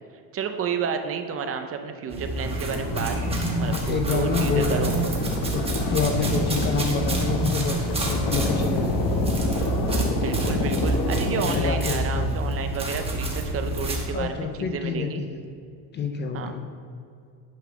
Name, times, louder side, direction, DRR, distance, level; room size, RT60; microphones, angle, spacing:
voice 1, 0.3-3.2 3.6-5.0 10.2-15.2 16.3-16.5, right 6 dB, 30° right, 7 dB, 0.5 m, -31 dB
sound 1, 2.1-14.0, right 1 dB, 15° right, 1.1 m, -28 dB
sound 2, 2.4-11.7, left 2 dB, 50° left, 1.1 m, -28 dB
voice 2, 3.6-4.7 5.5-9.1 10.3-10.6 11.4-12.4 14.1-15.4 15.9-16.7, left 5 dB, 25° left, 5 dB, 0.4 m, -28 dB
9.3 x 3.9 x 5.8 m, 2.4 s
cardioid pair, 135°, 45 cm